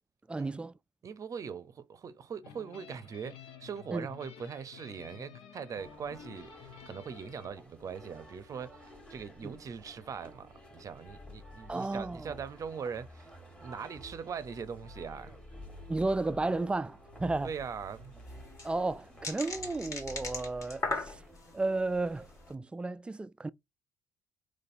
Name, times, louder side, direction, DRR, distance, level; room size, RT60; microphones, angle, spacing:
voice 1, 0.3-0.7 3.9-4.1 9.4-9.5 11.7-12.3 15.9-17.5 18.6-21.2 21.5-23.5, right 2 dB, 10° right, 0.3 m, -33 dB
voice 2, 1.0-13.3 13.6-15.4 17.4-18.1, right 6 dB, 40° right, 0.6 m, -41 dB
sound 1, 2.4-7.5, left 8 dB, 70° left, 0.8 m, -52 dB
sound 2, 5.8-22.5, left 1 dB, 10° left, 1.5 m, -51 dB
sound 3, 17.5-17.6 17.7-17.8 18.3-21.5 22.1-22.4, left 2 dB, 40° left, 1.6 m, -37 dB
4.0 x 3.1 x 2.6 m
supercardioid pair, 80°, 9 cm